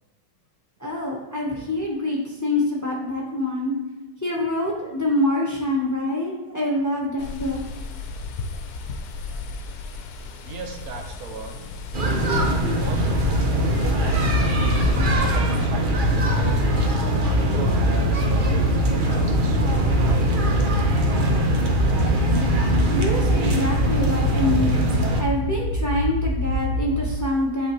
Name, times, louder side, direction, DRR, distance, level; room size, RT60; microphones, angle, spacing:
voice 1, 0.8-3.8 4.2-7.6 22.9-24.9 25.2-27.7, left 1 dB, 15° left, -3 dB, 1.0 m, -25 dB
sound 1, 7.2-15.2, left 4 dB, 80° left, 1.1 m, -33 dB
voice 2, 10.4-11.7 12.3-16.9 17.3-21.5, right 4 dB, 80° right, 4 dB, 1.2 m, -39 dB
sound 2, 11.9-25.2, right 1 dB, 45° right, 0.7 m, -22 dB
sound 3, 13.0-27.1, left 1 dB, 40° left, 0.5 m, -26 dB
8.0 x 4.3 x 3.2 m, 1.1 s
omnidirectional pair, 1.6 m